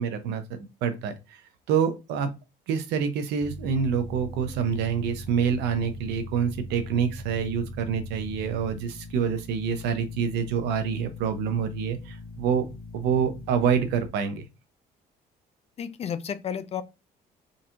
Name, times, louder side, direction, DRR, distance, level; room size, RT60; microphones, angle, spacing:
voice 1, 0.0-1.4 1.7-2.3 2.7-12.7 12.9-14.5, right 7 dB, 90° right, 0.7 m, -27 dB
sound 1, 3.4-14.1, left 1 dB, 60° left, 0.8 m, -41 dB
voice 2, 15.8-16.8, left 8 dB, 40° left, 0.4 m, -32 dB
3.9 x 2.8 x 2.5 m
cardioid pair, 110°, 17 cm